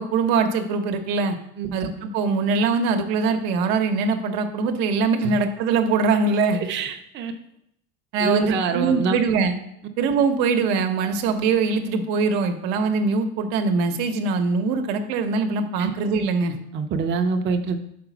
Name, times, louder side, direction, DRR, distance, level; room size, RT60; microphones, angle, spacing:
voice 1, 0.0-1.3 1.7-6.7 8.1-9.6 10.0-16.5, right 4 dB, 80° right, 6 dB, 0.9 m, -22 dB
voice 2, 6.5-7.3 8.2-9.2 15.8-15.9 16.7-17.8, right 5 dB, 30° right, 5 dB, 0.5 m, -25 dB
5.0 x 4.1 x 5.9 m, 0.75 s
cardioid pair, 135°, 36 cm